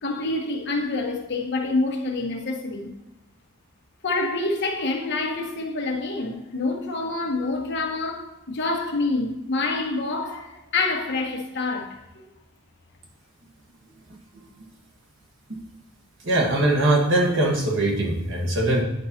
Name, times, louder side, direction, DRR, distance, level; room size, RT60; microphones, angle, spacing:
voice 1, 0.0-2.9 4.0-12.2, left 3 dB, 55° left, 1.1 m, -27 dB
voice 2, 16.2-18.8, right 1 dB, 60° right, 1.4 m, -21 dB
9.4 x 5.3 x 2.8 m
head